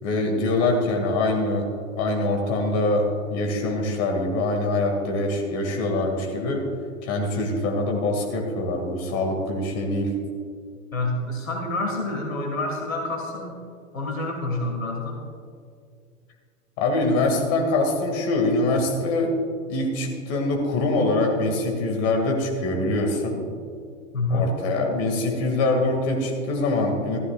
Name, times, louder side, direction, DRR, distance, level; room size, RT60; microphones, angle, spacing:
voice 1, 0.0-1.7 2.0-6.6 7.0-10.1 16.8-19.4 19.7-23.4 24.3-27.2, left 2 dB, 40° left, 1 dB, 2.3 m, -24 dB
voice 2, 10.9-13.6 13.9-15.2 24.1-24.5, left 2 dB, 75° left, 1 dB, 2.0 m, -27 dB
15.0 x 13.5 x 2.5 m, 2.2 s
figure-of-eight pair, 100°, 40 cm